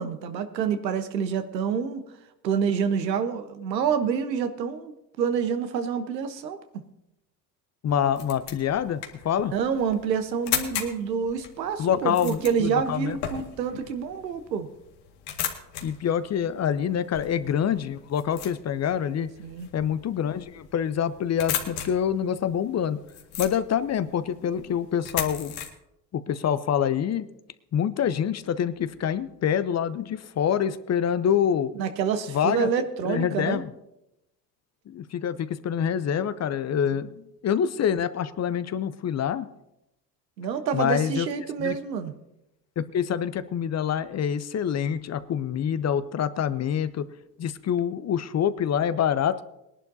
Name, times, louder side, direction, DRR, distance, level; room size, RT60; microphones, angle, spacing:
voice 1, 0.0-2.0 2.4-6.6 9.5-14.7 19.4-19.7 31.8-33.6 40.4-42.1, right 7 dB, 80° right, 9 dB, 1.2 m, -27 dB
voice 2, 7.8-9.5 11.8-13.2 15.8-19.3 19.7-23.0 23.4-25.5 26.1-27.3 27.7-31.7 32.3-32.7 33.0-33.7 34.9-39.5 40.7-41.3 41.6-41.8 42.8-47.1 47.4-49.4, left 8 dB, 35° left, 14 dB, 0.8 m, -26 dB
sound 1, 7.9-25.7, left 9 dB, 70° left, 2.0 m, -37 dB
22.0 x 11.0 x 2.8 m, 0.88 s
hypercardioid pair, 60°, 49 cm